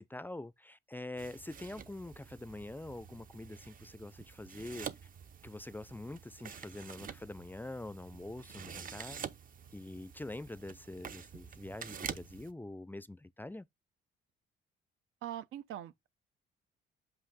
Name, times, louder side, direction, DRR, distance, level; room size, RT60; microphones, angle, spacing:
voice 1, 0.0-4.9 5.4-9.2 9.7-13.7, left 2 dB, 10° left, 0.4 m, -45 dB
sound 1, 1.2-12.5, right 7 dB, 45° right, 0.7 m, -48 dB
voice 2, 15.2-16.1, right 11 dB, 85° right, 0.7 m, -42 dB
7.8 x 2.8 x 4.9 m
cardioid pair, 90°, 20 cm